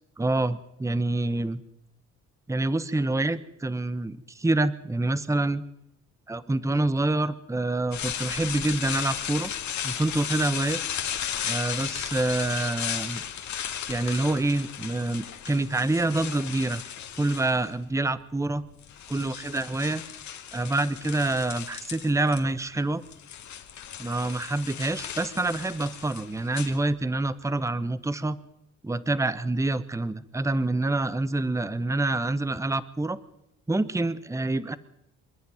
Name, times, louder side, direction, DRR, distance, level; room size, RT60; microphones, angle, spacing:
voice 1, 0.2-1.6 2.5-5.6 6.3-9.5 9.8-10.8 11.4-13.2 13.9-16.8 17.2-18.6 19.1-20.0 20.5-23.0 24.0-28.4 28.8-33.2 33.7-34.8, right 2 dB, 10° right, 15 dB, 1.0 m, -27 dB
sound 1, 7.9-17.8 18.6-22.4 22.7-27.3, left 9 dB, 70° left, 2.3 m, -35 dB
27.0 x 10.5 x 9.6 m, 0.82 s
cardioid pair, 90°, 30 cm